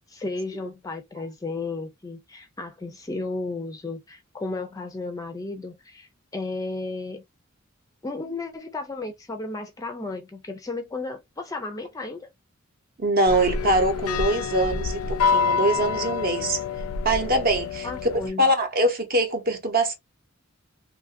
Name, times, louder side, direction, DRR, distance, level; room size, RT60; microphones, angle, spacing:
voice 1, 0.1-7.2 8.0-12.3 17.8-18.5, left 3 dB, 15° left, 0.4 m, -34 dB
voice 2, 13.0-16.6 17.0-17.9 18.4-19.9, right 1 dB, 45° right, 0.8 m, -23 dB
sound 1, 13.3-18.3, left 5 dB, 85° left, 0.4 m, -27 dB
2.8 x 2.4 x 2.5 m
head